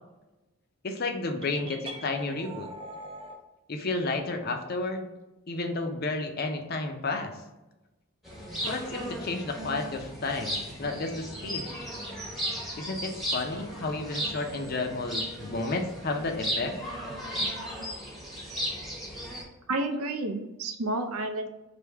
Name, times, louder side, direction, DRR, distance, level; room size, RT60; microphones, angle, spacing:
voice 1, 0.8-2.7 3.7-5.1 5.5-7.3 8.7-11.7 12.8-16.7, left 3 dB, 45° left, 5 dB, 0.5 m, -32 dB
sound 1, 1.4-3.4, right 1 dB, 25° right, 0.4 m, -42 dB
sound 2, 8.2-19.4, equal, ahead, 0.8 m, -35 dB
voice 2, 19.7-21.5, right 2 dB, 80° right, 6 dB, 0.6 m, -30 dB
3.4 x 2.6 x 4.5 m, 1.0 s
head